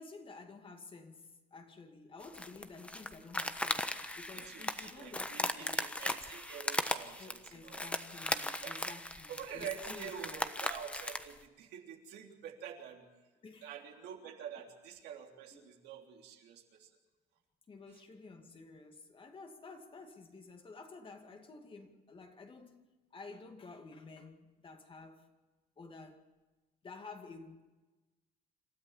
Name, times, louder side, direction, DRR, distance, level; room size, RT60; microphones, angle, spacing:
voice 1, 0.0-5.9 7.2-10.5 13.4-13.8 15.5-15.6 17.7-25.3 25.8-26.2 26.8-27.6, left 3 dB, 30° left, 2.4 m, -52 dB
sound 1, 2.2-11.3, left 1 dB, 5° left, 1.2 m, -38 dB
voice 2, 4.4-7.9 8.4-8.9 9.3-13.0 13.6-16.9, right 8 dB, 80° right, 3.4 m, -47 dB
27.5 x 13.5 x 7.4 m
cardioid pair, 110°, 17 cm